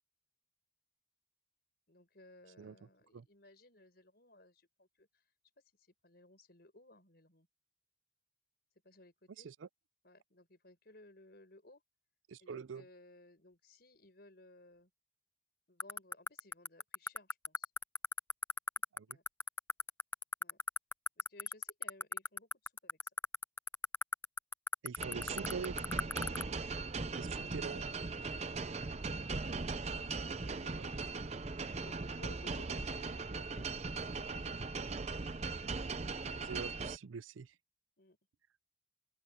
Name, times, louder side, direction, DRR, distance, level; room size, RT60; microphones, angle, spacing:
voice 1, 1.9-5.2 5.8-7.5 8.8-9.5 10.0-11.8 12.4-14.9 15.7-17.7 19.1-19.2 20.4-20.6 21.2-23.0 26.1-27.3 28.3-28.8 30.2-33.9 38.0-38.2, left 2 dB, 50° left, 5.2 m, -60 dB
voice 2, 12.3-12.8 18.9-19.2 24.8-25.9 27.2-27.9 30.6-30.9 36.4-37.5, right 6 dB, 80° right, 0.5 m, -44 dB
sound 1, 15.8-26.4, left 4 dB, 10° left, 0.4 m, -34 dB
sound 2, 25.0-37.0, right 4 dB, 35° right, 0.6 m, -39 dB
open air
head